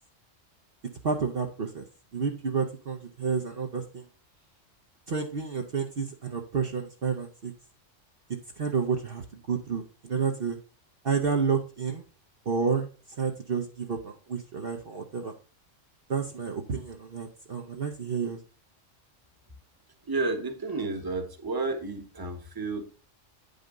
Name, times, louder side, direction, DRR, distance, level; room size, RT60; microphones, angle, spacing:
voice 1, 1.0-1.8 2.1-4.1 5.1-7.5 8.6-10.6 11.0-12.0 12.5-12.9 13.2-15.3 16.1-18.4, right 5 dB, 50° right, 3 dB, 1.1 m, -30 dB
voice 2, 20.1-22.8, right 3 dB, 20° right, 5 dB, 1.2 m, -31 dB
9.3 x 5.4 x 3.8 m, 0.35 s
omnidirectional pair, 1.3 m